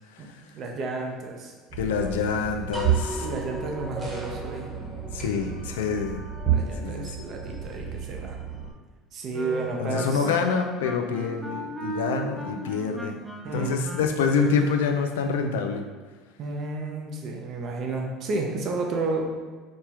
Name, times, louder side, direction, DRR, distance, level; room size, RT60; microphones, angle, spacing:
voice 1, 0.5-1.5 3.2-4.7 6.4-8.4 9.1-10.3 13.4-13.7 16.4-19.3, right 3 dB, 50° right, 1 dB, 0.7 m, -31 dB
sound 1, 1.7-8.7, right 7 dB, 25° right, 1.1 m, -31 dB
voice 2, 1.8-3.3 5.1-6.2 6.8-7.2 9.8-13.2 13.5-15.9, left 5 dB, 90° left, 5 dB, 0.4 m, -26 dB
Wind instrument woodwind instrument, 9.3-15.1, right 2 dB, 5° right, 0.7 m, -37 dB
4.3 x 2.2 x 4.5 m, 1.4 s
supercardioid pair, 90°, 0 cm